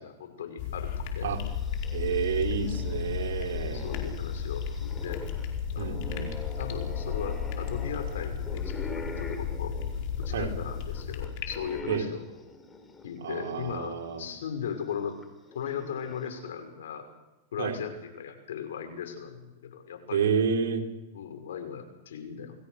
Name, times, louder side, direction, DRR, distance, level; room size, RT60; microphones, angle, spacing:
voice 1, 0.0-1.3 3.7-5.2 5.7-6.0 6.5-9.7 10.2-12.2 13.0-15.2 15.5-17.0 17.5-20.3 21.1-22.5, left 8 dB, 85° left, 5 dB, 5.8 m, -38 dB
sound 1, 0.6-11.8, left 7 dB, 55° left, 4.9 m, -34 dB
sound 2, 1.4-13.6 14.0-14.1 15.2-16.5, left 3 dB, 15° left, 4.2 m, -44 dB
voice 2, 1.9-3.9 5.8-6.3 10.3-10.5 11.9-12.1 13.2-14.3 17.6-17.8 20.1-20.8, right 6 dB, 80° right, 2 dB, 4.7 m, -29 dB
29.0 x 20.0 x 6.6 m, 1.0 s
supercardioid pair, 135°, 0 cm